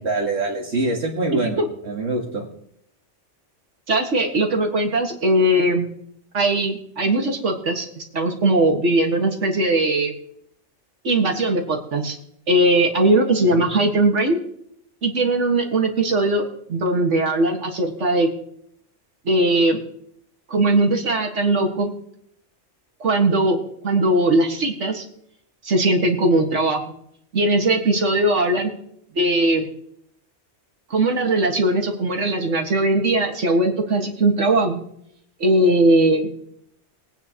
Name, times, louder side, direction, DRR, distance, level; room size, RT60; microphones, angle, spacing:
voice 1, 0.0-1.6 1.8-2.4, right 2 dB, 65° right, -3 dB, 2.1 m, -24 dB
voice 2, 3.9-5.9 6.3-10.1 11.0-12.2 12.5-14.4 15.0-18.3 19.2-19.8 20.5-21.9 23.0-23.6 23.8-25.1 25.6-26.8 27.3-28.7 29.1-29.7 30.9-34.8 35.4-36.3, right 2 dB, 80° right, 2 dB, 2.1 m, -19 dB
21.0 x 9.2 x 3.0 m, 0.71 s
omnidirectional pair, 1.2 m